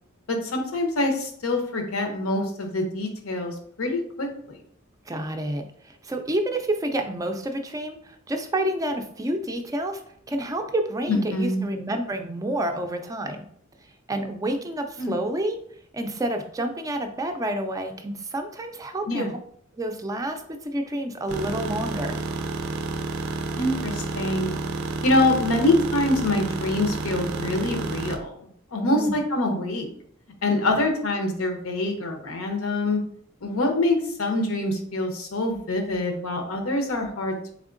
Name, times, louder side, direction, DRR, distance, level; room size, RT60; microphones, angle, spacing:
voice 1, 0.3-4.6 11.1-11.7 15.0-15.2 19.1-19.3 23.6-24.6 25.0-29.9 30.4-33.0 33.4-37.5, left 2 dB, 85° left, 4 dB, 0.7 m, -25 dB
voice 2, 5.1-10.0 10.3-13.4 14.1-15.6 15.9-19.4 19.8-22.2 28.8-29.2 30.5-30.8, right 1 dB, 15° right, 5 dB, 0.4 m, -29 dB
sound 1, 21.3-28.2, right 3 dB, 80° right, 0.4 m, -30 dB
3.5 x 3.4 x 2.5 m, 0.63 s
head